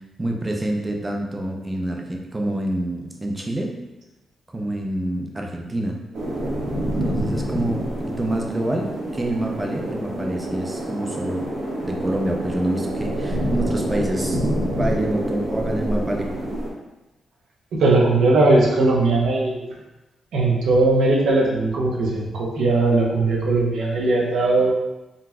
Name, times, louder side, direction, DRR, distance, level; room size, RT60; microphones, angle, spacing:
voice 1, 0.2-3.8 4.5-6.0 7.0-11.5 11.8-16.3, right 1 dB, 15° right, 1 dB, 0.4 m, -27 dB
sound 1, 6.1-16.7, equal, 55° right, 0.8 m, -27 dB
voice 2, 17.7-19.6 20.3-24.7, right 2 dB, 90° right, -3 dB, 0.7 m, -19 dB
3.8 x 2.6 x 2.3 m, 1.0 s
wide cardioid pair, 140°, 0 cm